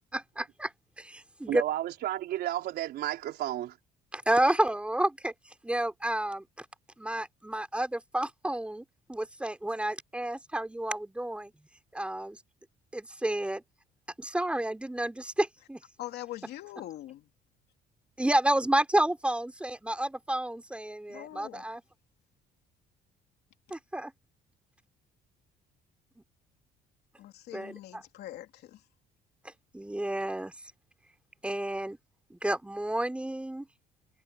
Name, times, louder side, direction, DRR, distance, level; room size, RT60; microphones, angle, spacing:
voice 1, 0.1-1.6 4.1-6.7 7.0-12.4 12.9-13.6 14.2-15.8 18.2-21.8 23.7-24.1 27.5-28.0 29.4-30.7 31.4-32.0 32.3-33.7, right 1 dB, 5° right, 3.6 m, -31 dB
voice 2, 1.5-3.8, right 13 dB, 75° right, 4.0 m, -32 dB
voice 3, 16.0-17.2 21.1-21.6 27.2-28.8, left 14 dB, 75° left, 3.2 m, -43 dB
cardioid pair, 110°, 17 cm